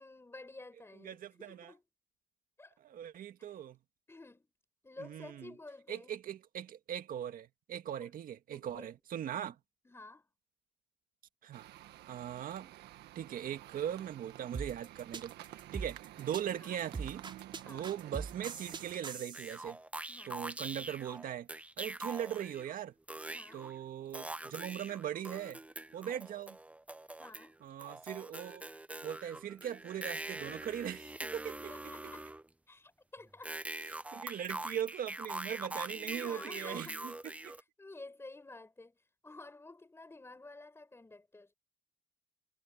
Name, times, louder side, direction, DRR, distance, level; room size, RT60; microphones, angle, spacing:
voice 1, 0.0-1.8 2.6-2.8 3.4-3.5 4.1-4.5 4.8-6.2 8.0-8.1 8.5-8.9 9.3-9.5 9.8-10.3 16.5-16.8 17.6-17.9 20.1-20.5 23.3-23.6 27.2-27.6 31.6-32.3 32.7-33.5 35.7-37.0 37.8-41.5, left 2 dB, 15° left, 5.0 m, -52 dB
voice 2, 1.0-1.7 2.8-3.8 5.0-5.5 5.9-9.5 11.4-11.7 12.1-12.7 13.2-17.2 17.7-19.8 20.3-21.5 21.8-22.9 23.5-25.6 25.9-26.6 27.6-28.7 29.0-31.7 33.8-37.1 37.4-37.5, right 10 dB, 55° right, 1.9 m, -40 dB
sound 1, 11.5-19.0, right 14 dB, 80° right, 1.6 m, -51 dB
sound 2, 14.5-19.6, right 5 dB, 30° right, 4.2 m, -42 dB
sound 3, 19.3-22.8 23.1-23.7 24.1-27.5 27.8-32.4 33.4-37.6, right 2 dB, 10° right, 0.8 m, -43 dB
cardioid pair, 110°, 17 cm